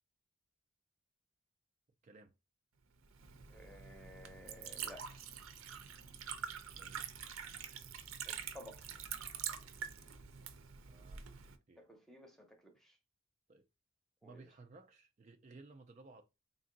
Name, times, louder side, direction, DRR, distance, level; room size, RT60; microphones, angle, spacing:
Liquid, 3.0-11.5, right 8 dB, 80° right, 0.6 m, -46 dB
voice 1, 3.5-5.2 8.3-8.8 11.8-13.0 14.2-14.4, equal, ahead, 0.7 m, -55 dB
voice 2, 6.7-7.1 10.9-11.2 11.7-11.8 13.5-13.7 14.2-16.2, right 3 dB, 35° right, 0.3 m, -57 dB
3.7 x 2.5 x 3.8 m
head